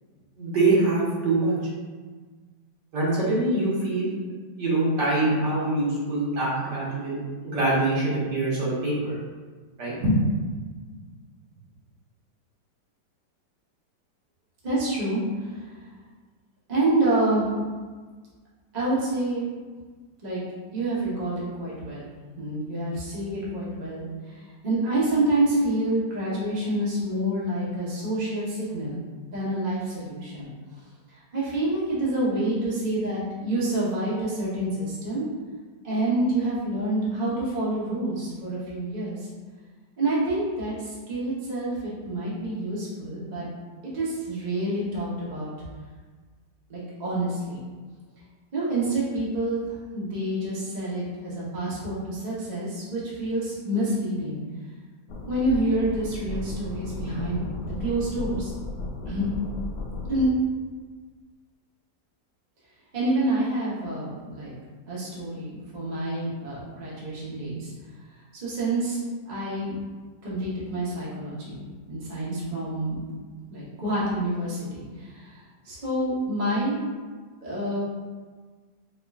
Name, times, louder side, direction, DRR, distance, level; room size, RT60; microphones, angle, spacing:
voice 1, 0.4-1.5 2.9-4.1 4.6-9.1 9.8-10.3, right 2 dB, 75° right, -7 dB, 1.8 m, -24 dB
voice 2, 14.6-15.7 16.7-17.5 18.7-19.4 20.2-20.4 20.7-22.0 22.4-29.0 29.3-30.5 31.3-35.3 35.8-39.3 40.0-43.5 43.9-45.5 46.7-47.6 48.5-49.7 49.9-54.4 55.3-57.5 57.8-58.5 59.1-59.3 60.1-60.3 62.9-64.5 64.9-67.7 68.4-69.8 70.2-73.0 73.5-76.8 77.4-77.8, right 1 dB, 30° right, -8 dB, 0.9 m, -27 dB
sound 1, 55.1-60.3, left 1 dB, 80° left, 1.1 m, -35 dB
5.2 x 3.0 x 2.4 m, 1.4 s
omnidirectional pair, 1.9 m